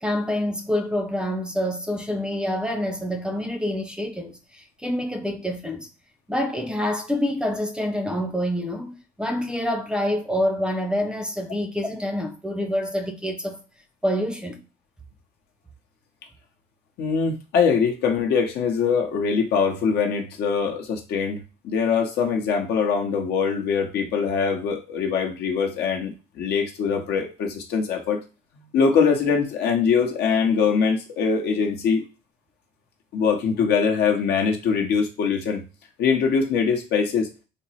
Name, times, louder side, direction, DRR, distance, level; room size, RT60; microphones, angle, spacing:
voice 1, 0.0-5.9 6.3-13.6 14.0-14.6, left 1 dB, 5° right, 0.5 m, -27 dB
voice 2, 17.0-21.4 21.6-28.2 28.6-32.0 33.1-35.6 36.0-37.3, left 6 dB, 75° left, 0.8 m, -22 dB
3.5 x 2.0 x 4.1 m
cardioid pair, 110°, 17 cm